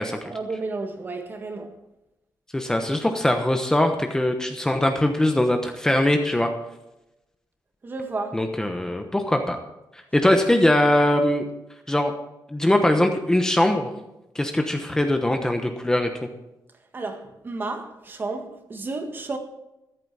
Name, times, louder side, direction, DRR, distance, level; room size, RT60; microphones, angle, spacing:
voice 1, 0.0-1.8 7.8-8.4 16.9-19.4, right 3 dB, 30° right, 1.6 m, -32 dB
voice 2, 2.5-6.5 8.3-9.6 10.1-11.5 11.9-12.1 12.5-13.9 14.3-16.1, left 1 dB, 10° left, 1.0 m, -21 dB
13.5 x 11.5 x 4.2 m
wide cardioid pair, 150°, 7 cm